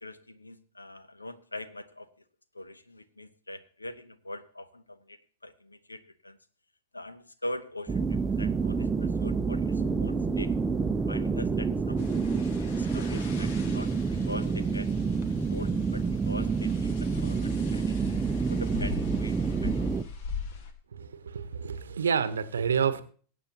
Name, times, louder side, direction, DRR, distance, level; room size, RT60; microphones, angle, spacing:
voice 1, 0.0-2.1 2.5-5.2 5.4-6.4 6.9-10.5 11.0-12.1 12.7-13.9 14.2-15.0 15.5-16.7 17.0-18.0 18.5-19.9, left 1 dB, 80° left, 14 dB, 0.8 m, -42 dB
sound 1, 7.9-20.0, right 5 dB, 15° right, 0.6 m, -28 dB
sound 2, 12.0-20.7, left 5 dB, 50° left, 1.4 m, -42 dB
voice 2, 20.9-23.0, right 7 dB, 70° right, 14 dB, 0.9 m, -29 dB
23.0 x 8.5 x 2.9 m, 0.43 s
figure-of-eight pair, 90°, 0 cm